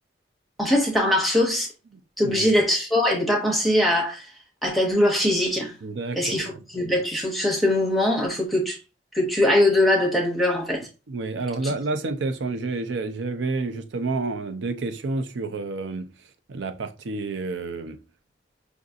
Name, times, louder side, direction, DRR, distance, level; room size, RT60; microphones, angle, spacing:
voice 1, 0.6-1.7 2.2-4.3 4.6-5.7 6.1-8.8 9.1-10.9 11.6-11.7, left 1 dB, ahead, 0.7 m, -22 dB
voice 2, 2.2-2.5 5.8-6.6 11.1-16.1 16.5-18.0, right 3 dB, 80° right, 0.5 m, -29 dB
4.8 x 2.6 x 2.4 m
head